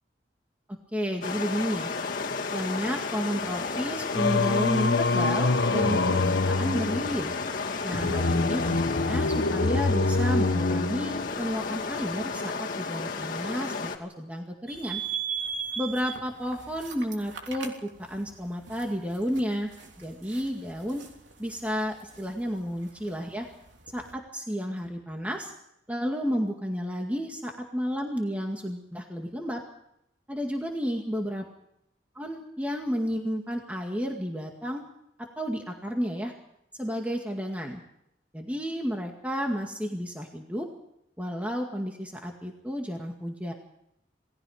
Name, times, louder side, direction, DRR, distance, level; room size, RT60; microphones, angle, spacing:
voice 1, 0.9-1.9 2.5-7.3 7.8-15.0 15.8-19.7 20.0-21.0 21.4-23.5 23.9-25.5 25.9-29.6 30.3-31.4 32.1-34.8 35.4-36.3 36.8-37.8 38.3-40.7 41.2-43.5, equal, 10° right, 1 dB, 2.1 m, -31 dB
sound 1, 1.2-14.0, left 4 dB, 50° left, 2.5 m, -33 dB
Singing, 4.1-11.5, left 3 dB, 65° left, 0.9 m, -26 dB
sound 2, 14.7-24.1, right 7 dB, 85° right, 3.4 m, -39 dB
28.5 x 19.0 x 5.0 m, 0.78 s
head